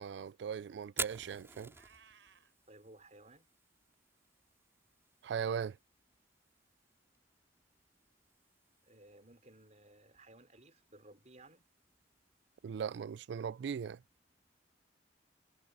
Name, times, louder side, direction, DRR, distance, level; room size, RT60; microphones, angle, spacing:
voice 1, 0.0-1.7 5.2-5.8 12.6-14.0, right 7 dB, 65° right, 0.3 m, -39 dB
Fire, 0.8-14.7, right 4 dB, 15° right, 4.2 m, -51 dB
Meow, 1.7-2.5, right 6 dB, 85° right, 5.1 m, -62 dB
voice 2, 2.7-3.5 8.8-11.6, right 2 dB, 40° right, 5.4 m, -58 dB
head